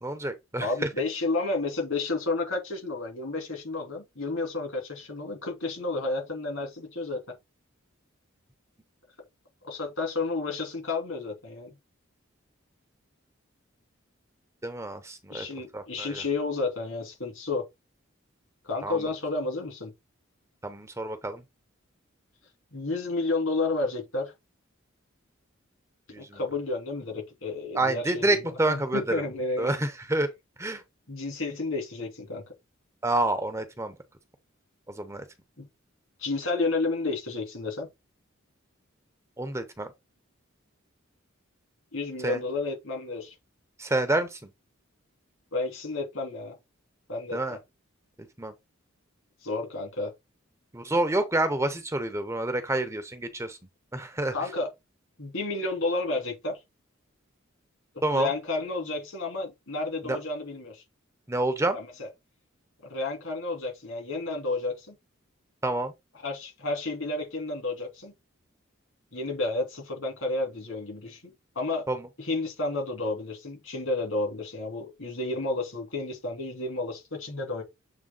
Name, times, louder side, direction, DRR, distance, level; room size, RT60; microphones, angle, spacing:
voice 1, 0.0-0.7 14.6-15.5 15.7-16.2 18.8-19.1 20.6-21.4 26.1-26.4 27.7-29.2 29.6-30.3 30.6-30.8 33.0-34.0 34.9-35.3 39.4-39.9 42.2-42.4 43.8-44.5 47.3-47.6 48.4-48.5 50.7-53.6 53.9-54.3 58.0-58.3 60.1-60.2 61.3-61.8 65.6-65.9 71.9-72.0, right 2 dB, 15° right, 0.8 m, -28 dB
voice 2, 0.6-7.2 9.6-11.7 15.3-17.6 18.6-19.9 22.7-24.3 26.2-28.4 28.7-29.7 31.1-32.4 35.6-35.7 36.2-37.9 41.9-43.3 45.5-46.5 47.1-47.6 49.4-50.1 54.3-54.7 55.2-56.6 57.9-60.8 61.7-62.1 62.8-64.9 66.2-68.1 69.1-71.9 72.2-77.6, left 3 dB, 75° left, 3.2 m, -31 dB
7.5 x 3.3 x 3.8 m
head